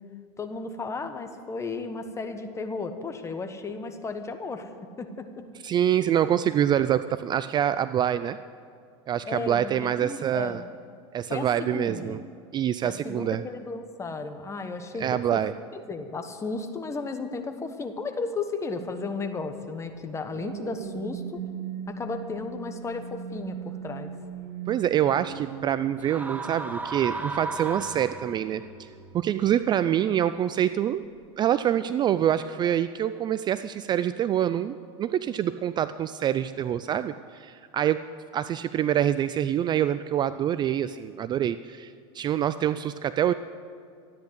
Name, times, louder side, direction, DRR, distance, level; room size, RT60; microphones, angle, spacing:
voice 1, 0.4-4.7 5.0-5.4 9.3-10.6 11.3-12.2 12.8-15.4 15.7-21.4 21.9-24.1, left 3 dB, 20° left, 7 dB, 1.3 m, -34 dB
voice 2, 5.6-8.4 9.1-10.6 11.1-12.2 12.5-13.4 15.0-15.5 24.7-28.9 29.1-31.0 31.4-38.0 38.3-43.3, right 10 dB, 30° right, 13 dB, 0.4 m, -26 dB
sound 1, 19.9-30.4 31.0-31.3, right 7 dB, 90° right, 1.3 m, -41 dB
sound 2, 26.0-28.6, right 3 dB, 10° right, 0.8 m, -34 dB
13.0 x 10.5 x 8.2 m, 2.3 s
supercardioid pair, 115°, 15 cm